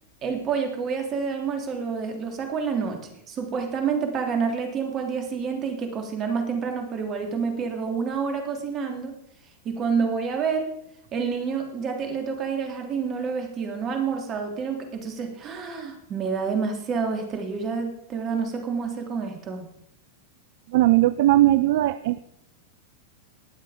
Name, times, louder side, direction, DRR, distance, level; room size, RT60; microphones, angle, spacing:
voice 1, 0.2-3.0 3.3-9.1 9.6-10.7 11.1-19.6, right 5 dB, 35° right, 4 dB, 3.2 m, -28 dB
voice 2, 20.7-22.2, right 15 dB, 65° right, 15 dB, 0.4 m, -19 dB
19.5 x 7.6 x 5.1 m, 0.79 s
hypercardioid pair, 100°, 0 cm